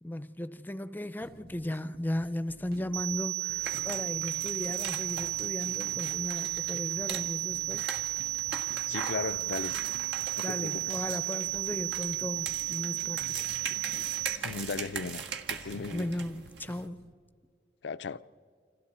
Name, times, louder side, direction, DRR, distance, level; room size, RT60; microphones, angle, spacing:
voice 1, 0.0-7.9 10.4-13.5 15.9-17.1, left 1 dB, 10° left, 0.5 m, -36 dB
sound 1, 1.2-17.1, right 3 dB, 60° right, 0.6 m, -53 dB
sound 2, 2.9-14.4, right 16 dB, 30° right, 0.9 m, -33 dB
sound 3, 3.6-16.9, right 6 dB, 85° right, 1.7 m, -41 dB
voice 2, 8.9-9.7 10.4-11.0 14.3-15.2 15.5-16.1 17.8-18.2, left 5 dB, 80° left, 0.5 m, -36 dB
29.5 x 27.5 x 4.3 m
head